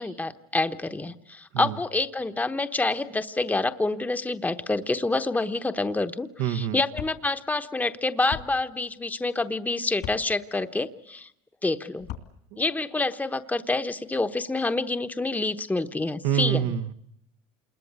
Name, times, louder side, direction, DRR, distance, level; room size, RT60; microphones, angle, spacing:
voice 1, 0.0-11.3 11.6-12.1 12.6-16.6, left 2 dB, 10° left, 9 dB, 1.0 m, -27 dB
voice 2, 6.4-6.8 12.5-12.6 16.2-16.9, right 10 dB, 85° right, 8 dB, 1.3 m, -26 dB
sound 1, 6.9-7.2 8.3-8.5 10.0-10.2 12.0-12.3, left 11 dB, 70° left, 2.9 m, -36 dB
27.5 x 21.5 x 8.1 m, 0.76 s
supercardioid pair, 105°, 18 cm